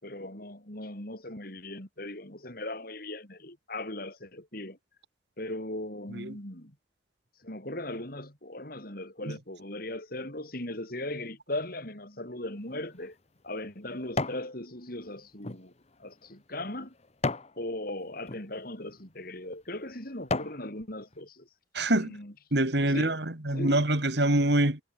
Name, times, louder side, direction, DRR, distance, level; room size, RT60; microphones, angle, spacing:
voice 1, 0.0-4.8 5.4-6.7 7.4-13.1 13.4-15.7 16.0-16.9 17.6-21.5 21.9-22.3 22.8-23.2 23.5-23.8, left 1 dB, 50° left, 5.8 m, -38 dB
sound 1, 12.6-14.5 15.0-17.6 18.2-18.4 19.1-19.3 19.8-20.6 21.1-21.2, left 3 dB, 35° left, 1.1 m, -35 dB
voice 2, 21.7-22.1 22.5-24.8, right 1 dB, 60° right, 2.8 m, -25 dB
head